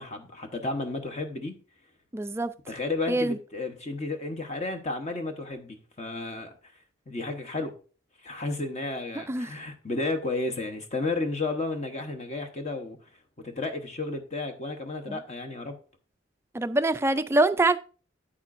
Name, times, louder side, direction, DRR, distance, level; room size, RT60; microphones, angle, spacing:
voice 1, 0.0-1.5 2.7-7.7 8.2-13.0 13.4-15.8, left 2 dB, 35° left, 0.9 m, -32 dB
voice 2, 2.1-2.5 3.1-3.4 9.2-9.5 15.1-15.2 16.5-17.8, right 2 dB, 10° right, 0.3 m, -24 dB
8.8 x 8.6 x 2.5 m
head